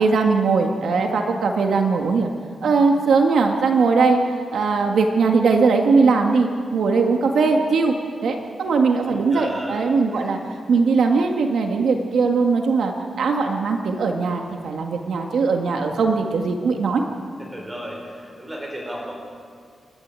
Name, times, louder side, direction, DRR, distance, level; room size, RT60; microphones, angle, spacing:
voice 1, 0.0-2.3 2.6-4.2 4.5-7.9 8.2-10.4 10.7-17.0, right 4 dB, 75° right, 3 dB, 1.7 m, -20 dB
voice 2, 9.0-10.4 17.5-19.2, equal, 10° right, -1 dB, 4.9 m, -35 dB
28.5 x 13.0 x 8.8 m, 2.1 s
wide cardioid pair, 170°, 0 cm